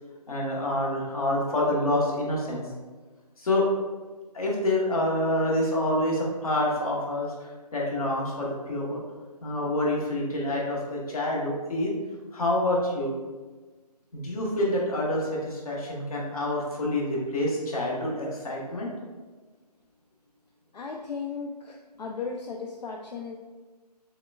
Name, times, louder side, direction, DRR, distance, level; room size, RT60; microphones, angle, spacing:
voice 1, 0.3-2.6 3.4-3.7 4.3-9.0 9.4-11.9 12.3-13.1 14.1-18.9, left 1 dB, 60° left, -3 dB, 1.2 m, -27 dB
voice 2, 20.7-23.4, left 5 dB, 80° left, 1 dB, 0.4 m, -36 dB
6.2 x 2.2 x 2.3 m, 1.3 s
figure-of-eight pair, 150°, 21 cm